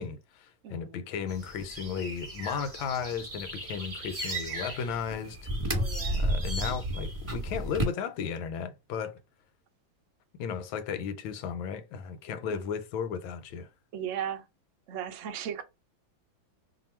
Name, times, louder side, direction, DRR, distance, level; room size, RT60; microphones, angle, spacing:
voice 1, 0.0-5.4 6.1-9.2 10.4-13.7, left 6 dB, 90° left, 1.4 m, -35 dB
voice 2, 0.6-1.0 5.7-6.2 12.5-12.6 13.9-14.4 14.9-15.6, right 9 dB, 85° right, 0.6 m, -36 dB
sound 1, 1.3-7.8, right 1 dB, 20° right, 1.2 m, -33 dB
2.9 x 2.5 x 4.2 m
omnidirectional pair, 2.1 m